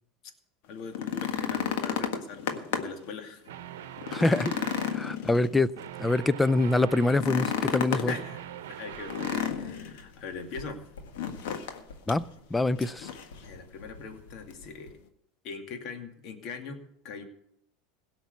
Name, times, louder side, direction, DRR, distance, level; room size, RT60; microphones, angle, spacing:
voice 1, 0.7-3.4 7.9-10.8 13.4-15.0 15.4-17.2, left 5 dB, 55° left, 2.4 m, -41 dB
sound 1, 0.8-3.1 3.5-3.6 4.0-5.9 7.1-8.2 9.1-10.0 11.2-11.8 12.1-12.2 12.8-13.4 14.5-14.6, left 8 dB, 70° left, 1.6 m, -31 dB
sound 2, 3.4-5.1 5.8-7.3 7.8-9.6, right 11 dB, 80° right, 0.9 m, -42 dB
voice 2, 4.1-4.5 4.9-5.7 6.0-8.1 12.1-12.2 12.5-13.1, left 2 dB, 10° left, 0.5 m, -25 dB
sound 3, 8.9-14.9, left 2 dB, 90° left, 1.9 m, -51 dB
17.0 x 6.1 x 8.2 m
hypercardioid pair, 95°, 0 cm